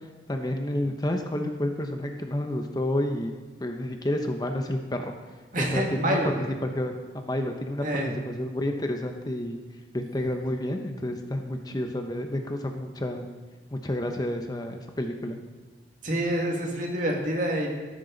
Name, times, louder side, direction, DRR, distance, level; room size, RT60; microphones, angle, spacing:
voice 1, 0.3-3.3 3.6-5.1 5.5-9.6 9.9-13.3 13.7-15.4, left 1 dB, 20° left, 4 dB, 0.8 m, -30 dB
voice 2, 5.5-6.3 7.8-8.1 16.0-17.7, right 1 dB, 45° right, 0 dB, 2.2 m, -27 dB
13.5 x 13.0 x 4.0 m, 1.4 s
head